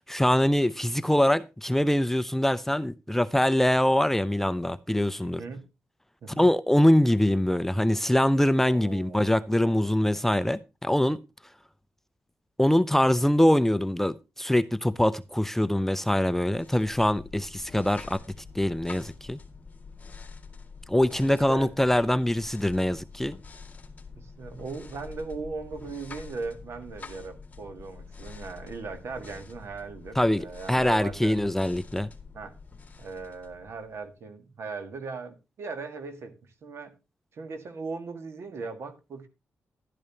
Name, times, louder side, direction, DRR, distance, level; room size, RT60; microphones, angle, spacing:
voice 1, 0.1-5.4 6.4-11.2 12.6-18.2 18.5-19.4 20.9-23.4 30.2-32.1, left 1 dB, 5° left, 0.5 m, -23 dB
voice 2, 5.2-5.6 6.2-6.5 8.7-10.2 21.1-21.7 24.2-31.4 32.3-32.5 33.0-36.9 37.3-39.3, right 4 dB, 70° right, 1.9 m, -39 dB
sound 1, 16.3-34.1, left 4 dB, 30° left, 2.1 m, -46 dB
12.0 x 11.0 x 2.9 m
cardioid pair, 85°, 5 cm